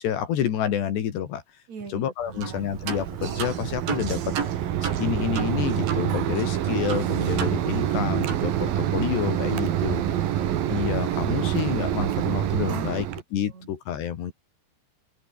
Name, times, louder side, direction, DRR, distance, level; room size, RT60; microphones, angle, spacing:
voice 1, 0.0-1.4 1.9-4.4 4.8-10.0 10.7-13.1 13.3-14.3, left 9 dB, 70° left, 4.3 m, -29 dB
voice 2, 1.7-2.7 12.6-13.2 13.5-13.8, right 5 dB, 40° right, 5.4 m, -42 dB
Mechanisms, 2.2-13.2, right 11 dB, 60° right, 3.1 m, -26 dB
sound 1, 2.4-2.6 2.9-6.1 6.4-6.5 6.9-8.0 8.3-8.5, right 7 dB, 75° right, 6.8 m, -33 dB
open air
omnidirectional pair, 5.3 m